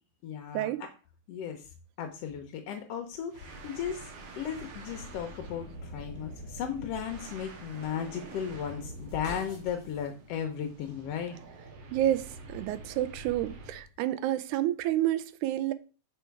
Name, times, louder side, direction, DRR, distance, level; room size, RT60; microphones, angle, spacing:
voice 1, 0.2-0.9 1.3-1.6 2.0-4.1 4.4-11.4, left 8 dB, 70° left, 1.6 m, -36 dB
sound 1, 3.3-13.8, right 2 dB, 60° right, 2.2 m, -46 dB
sound 2, 5.1-10.1, left 4 dB, 15° right, 3.4 m, -52 dB
voice 2, 11.9-15.7, right 13 dB, 85° right, 2.0 m, -29 dB
6.1 x 4.5 x 4.5 m
omnidirectional pair, 3.4 m